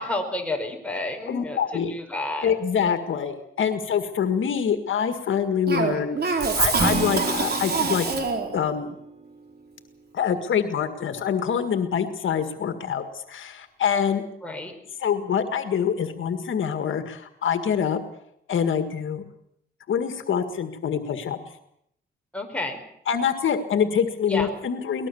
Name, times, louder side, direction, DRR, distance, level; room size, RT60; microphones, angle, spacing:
voice 1, 0.0-2.5 14.4-14.7 22.3-22.8 24.3-24.5, left 2 dB, 5° left, 2 dB, 4.9 m, -30 dB
voice 2, 1.3-1.9 2.4-8.1 8.5-9.0 10.1-14.2 15.0-18.0 18.5-19.2 19.9-21.4 23.1-25.1, left 7 dB, 80° left, 8 dB, 1.9 m, -25 dB
Cough, 5.7-8.6, right 4 dB, 55° right, 4.4 m, -25 dB
Acoustic guitar / Strum, 6.8-10.0, right 4 dB, 35° right, 2.8 m, -32 dB
23.0 x 19.5 x 7.1 m, 0.73 s
cardioid pair, 95°, 20 cm